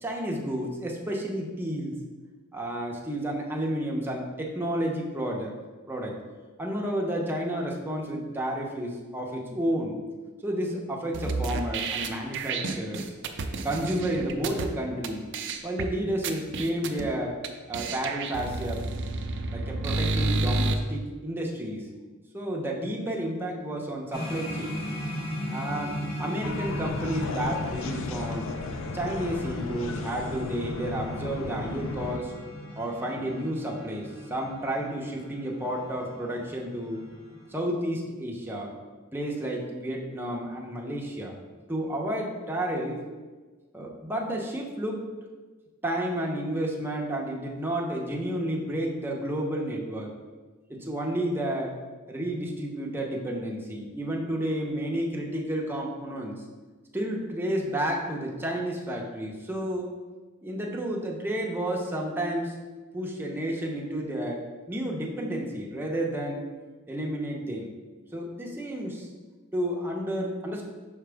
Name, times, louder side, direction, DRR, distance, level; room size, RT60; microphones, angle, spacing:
voice 1, 0.0-2.0 2.5-5.5 5.9-6.2 6.6-10.0 10.4-13.1 13.6-15.3 15.6-17.4 17.7-18.8 19.5-21.9 22.3-24.8 25.5-28.5 28.9-32.3 32.7-37.0 37.5-38.7 39.1-41.3 41.7-43.0 43.7-45.0 45.8-50.1 50.7-51.7 52.1-56.4 56.9-59.9 60.4-62.5 62.9-66.4 66.9-67.7 68.1-69.1 69.5-70.7, right 1 dB, 10° right, -1 dB, 0.8 m, -31 dB
sound 1, 11.1-14.7 15.0-15.1 15.3-15.9 16.2-17.1 17.4-17.5 17.7-20.7, right 3 dB, 55° right, 0.5 m, -30 dB
sound 2, 24.1-37.5, equal, 45° left, 1.5 m, -38 dB
sound 3, 26.4-32.2, left 4 dB, 65° left, 0.4 m, -35 dB
5.8 x 4.9 x 3.4 m, 1.3 s
head